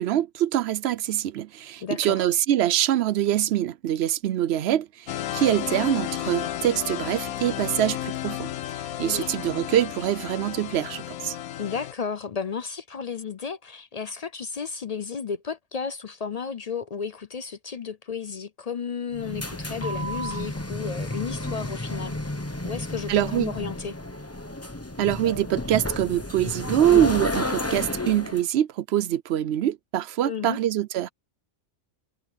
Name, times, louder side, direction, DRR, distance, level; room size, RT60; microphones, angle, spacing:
voice 1, 0.0-8.5 9.0-11.4 23.1-23.5 25.0-31.1, right 12 dB, 65° right, 0.7 m, -24 dB
voice 2, 1.8-2.2 9.0-9.3 11.6-24.0 30.2-30.6, left 6 dB, 60° left, 0.4 m, -33 dB
sound 1, 5.1-11.9, left 12 dB, 90° left, 1.1 m, -33 dB
sound 2, 19.1-28.4, left 1 dB, 10° left, 1.0 m, -31 dB
omnidirectional pair, 1.4 m